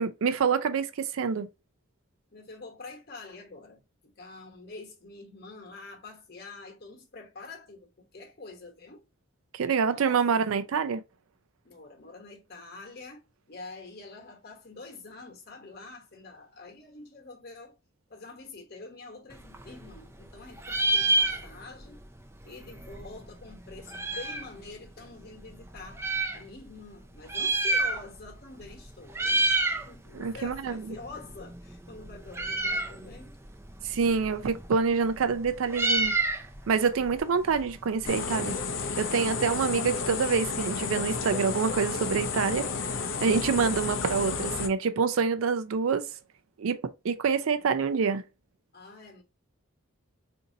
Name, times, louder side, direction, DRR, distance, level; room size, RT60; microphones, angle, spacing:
voice 1, 0.0-1.5 9.5-11.0 30.1-30.9 33.8-36.1 36.7-38.6 39.0-42.7 43.2-46.1 46.6-48.2, right 5 dB, 80° right, 0.4 m, -26 dB
voice 2, 2.3-9.0 9.8-10.2 10.5-10.7 11.6-17.8 18.1-22.1 22.4-26.0 26.3-29.4 29.9-33.4 48.7-49.2, left 3 dB, 50° left, 1.1 m, -46 dB
Meow, 19.3-20.3 20.6-21.9 22.2-22.3 22.4-24.5 25.2-26.4 27.1-28.3 28.6-28.8 29.1-29.9 30.2-38.1, right 2 dB, 10° right, 0.4 m, -29 dB
sound 1, 38.0-44.7, left 4 dB, 65° left, 0.5 m, -32 dB
3.9 x 2.7 x 2.6 m
head